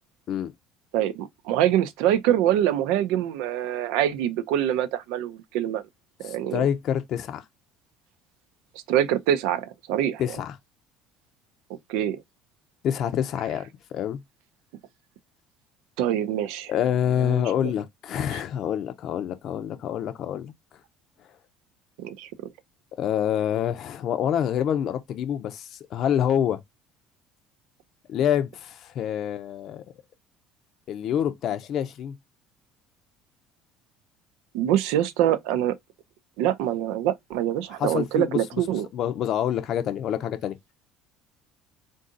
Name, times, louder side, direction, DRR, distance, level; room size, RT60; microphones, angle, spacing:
voice 1, 0.9-5.8 6.2-6.7 8.9-10.2 11.9-12.2 16.0-16.7 17.2-17.7 18.3-18.4 22.0-22.5 34.5-35.7 36.4-38.9, right 11 dB, 75° right, 0.6 m, -25 dB
voice 2, 6.2-7.4 10.2-10.6 12.8-14.2 16.7-20.5 23.0-26.6 28.1-29.8 30.9-32.2 37.8-38.6 38.9-40.6, left 9 dB, 60° left, 0.6 m, -27 dB
3.9 x 2.6 x 3.8 m
hypercardioid pair, 70°, 0 cm